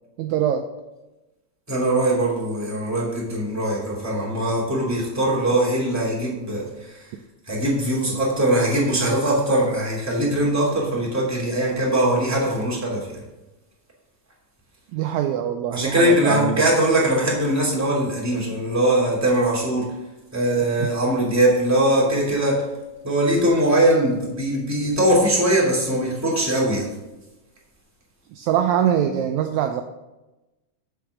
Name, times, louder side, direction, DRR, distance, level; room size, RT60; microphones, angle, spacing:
voice 1, 0.2-0.7 14.9-16.6 28.3-29.8, right 9 dB, 75° right, 6 dB, 1.8 m, -23 dB
voice 2, 1.7-7.0 7.5-13.2 15.7-19.9 20.3-22.6 23.0-26.9, right 1 dB, 5° right, -5 dB, 2.5 m, -21 dB
8.1 x 6.1 x 6.5 m, 1.0 s
omnidirectional pair, 3.7 m